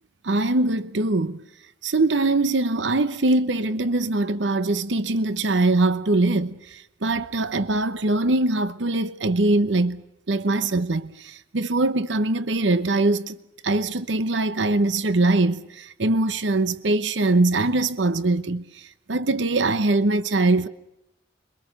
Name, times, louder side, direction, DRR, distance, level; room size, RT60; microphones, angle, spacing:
voice 1, 0.2-1.4 1.8-10.0 10.3-13.4 13.6-20.7, right 2 dB, 80° right, 0.9 m, -22 dB
27.0 x 23.5 x 6.6 m
head